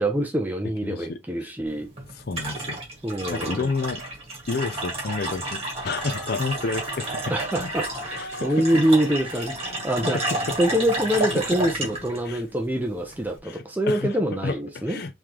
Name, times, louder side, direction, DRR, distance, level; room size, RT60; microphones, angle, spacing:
voice 1, 0.0-1.9 3.0-3.7 7.3-15.0, right 1 dB, 10° right, 0.6 m, -25 dB
voice 2, 0.8-1.5 2.1-2.8 3.3-4.0 4.5-7.2 7.6-7.7 8.2-8.5 10.0-10.1 11.1-11.6 12.2-12.4 13.4-14.2 14.4-15.1, left 4 dB, 50° left, 0.5 m, -30 dB
sound 1, 1.7-13.4, right 2 dB, 30° right, 1.7 m, -32 dB
Growling, 5.6-12.1, left 3 dB, 85° left, 0.7 m, -42 dB
3.7 x 3.2 x 3.0 m
head